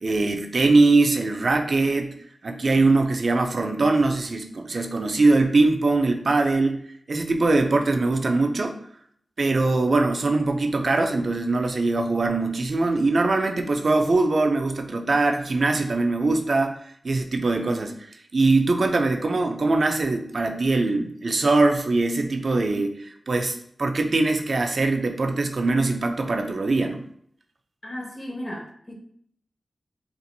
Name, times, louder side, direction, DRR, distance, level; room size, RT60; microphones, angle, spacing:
voice 1, 0.0-2.1 2.4-6.8 7.1-8.8 9.4-16.8 17.0-18.0 18.3-27.0, right 3 dB, 65° right, 4 dB, 0.4 m, -22 dB
voice 2, 27.8-28.9, left 1 dB, 35° left, -1 dB, 1.2 m, -35 dB
4.2 x 2.5 x 2.6 m, 0.66 s
cardioid pair, 50°, 0 cm